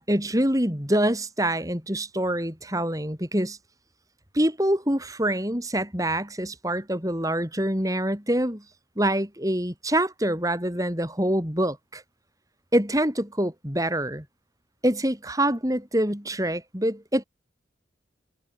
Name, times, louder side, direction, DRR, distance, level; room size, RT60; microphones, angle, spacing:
voice 1, 0.0-3.6 4.3-8.6 9.0-12.0 12.7-14.2 14.8-17.2, right 1 dB, 20° right, 6.2 m, -25 dB
head